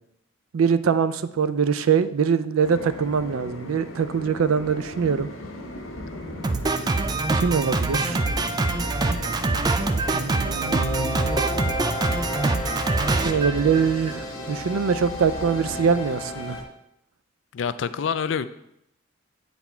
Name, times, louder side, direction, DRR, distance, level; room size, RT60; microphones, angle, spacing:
voice 1, 0.5-5.3 7.3-8.3 10.1-11.2 13.2-16.6, right 6 dB, 85° right, 13 dB, 0.4 m, -23 dB
sound 1, 2.6-16.6, left 1 dB, 90° left, 1.4 m, -38 dB
Drum kit, 6.4-14.2, right 3 dB, 20° right, 0.3 m, -25 dB
sound 2, 10.4-16.6, left 1 dB, 20° left, 1.5 m, -33 dB
voice 2, 17.5-18.5, left 7 dB, 60° left, 13 dB, 0.4 m, -26 dB
8.2 x 4.2 x 4.4 m, 0.79 s
head